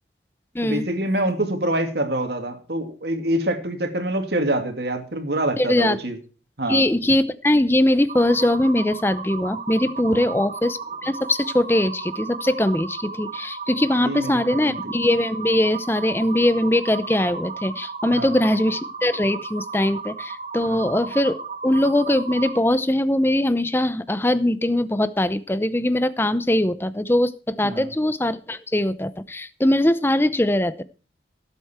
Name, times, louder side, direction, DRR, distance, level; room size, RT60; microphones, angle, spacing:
voice 1, 0.6-6.2 6.6-6.8 10.1-10.3 14.0-14.8 18.1-18.4 20.7-20.9 27.6-27.9, right 1 dB, 60° right, 5 dB, 2.4 m, -26 dB
voice 2, 5.6-6.0 6.7-30.8, left 1 dB, 10° left, 14 dB, 0.7 m, -21 dB
sound 1, 8.1-22.6, right 4 dB, 40° right, 1.6 m, -34 dB
17.5 x 8.2 x 4.4 m, 0.36 s
head